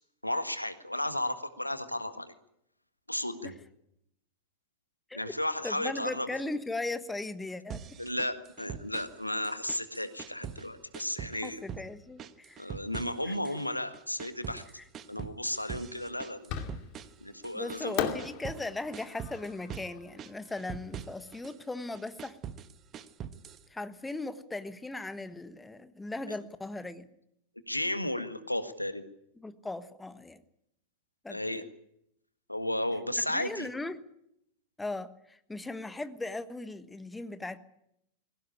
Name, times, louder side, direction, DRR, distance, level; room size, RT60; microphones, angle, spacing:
voice 1, 0.2-2.3 3.1-3.5 5.1-6.4 8.0-11.6 12.6-14.6 15.1-16.5 17.2-18.0 26.3-26.4 27.7-29.0 31.3-31.6 32.5-33.7, left 1 dB, 85° left, 10 dB, 1.6 m, -34 dB
voice 2, 5.6-7.8 11.4-12.7 13.2-13.3 17.5-22.4 23.7-27.1 29.4-30.4 31.2-31.7 33.3-34.0 34.8-37.6, left 2 dB, 10° left, 12 dB, 1.3 m, -38 dB
sound 1, 7.7-9.2 9.4-10.7 10.9-11.9 12.2-13.7 13.9-18.7 18.9-19.9 20.2-21.6 21.9-23.6, right 8 dB, 30° right, 1.3 m, -43 dB
Fireworks, 16.5-17.2 18.0-21.1, left 8 dB, 45° left, 2.5 m, -38 dB
21.5 x 17.5 x 10.0 m, 0.79 s
figure-of-eight pair, 90°, 0 cm